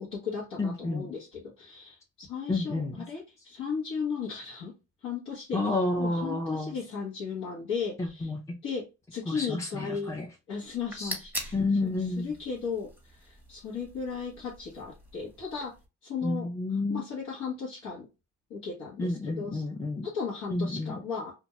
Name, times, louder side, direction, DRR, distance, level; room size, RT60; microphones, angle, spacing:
voice 1, 0.0-4.7 5.0-5.6 6.0-8.3 8.6-10.1 10.5-11.5 11.8-11.9 12.2-15.7 16.0-16.5 16.9-18.1 18.5-19.6 20.0-21.3, left 5 dB, 75° left, 1.1 m, -36 dB
voice 2, 0.6-1.1 2.5-3.0 5.5-6.8 8.0-8.4 9.3-10.3 11.0-11.2 11.5-12.3 16.2-17.1 19.0-20.1 20.5-21.0, left 2 dB, 10° left, 0.5 m, -30 dB
sound 1, 10.7-15.9, right 1 dB, 5° right, 0.9 m, -43 dB
2.5 x 2.2 x 2.9 m
cardioid pair, 90°, 30 cm